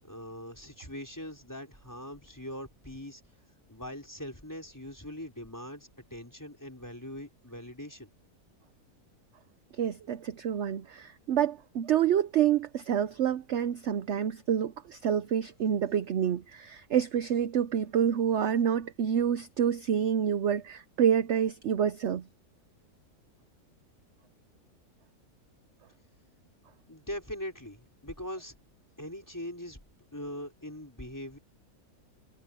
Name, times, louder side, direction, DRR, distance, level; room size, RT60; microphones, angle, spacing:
voice 1, 0.0-3.2 3.7-8.1 26.9-28.5 29.0-29.8 30.1-31.4, left 1 dB, 10° left, 4.5 m, -41 dB
voice 2, 9.8-22.2, right 9 dB, 60° right, 0.9 m, -28 dB
omnidirectional pair, 1.6 m